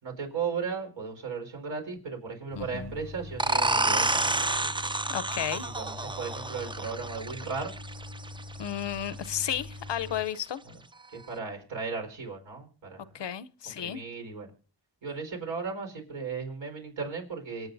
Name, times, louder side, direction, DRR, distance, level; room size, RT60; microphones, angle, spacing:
voice 1, 0.0-4.5 5.8-7.7 11.1-13.1 13.8-14.5 15.0-17.7, right 5 dB, 80° right, 4.6 m, -36 dB
voice 2, 2.5-3.0 5.1-5.7 8.6-10.6 13.1-14.0, left 10 dB, 65° left, 0.8 m, -33 dB
sound 1, 2.5-10.3, left 2 dB, 65° right, 2.7 m, -43 dB
sound 2, 3.4-8.8, right 2 dB, 10° right, 0.5 m, -29 dB
26.0 x 8.7 x 2.7 m
cardioid pair, 60°, 45 cm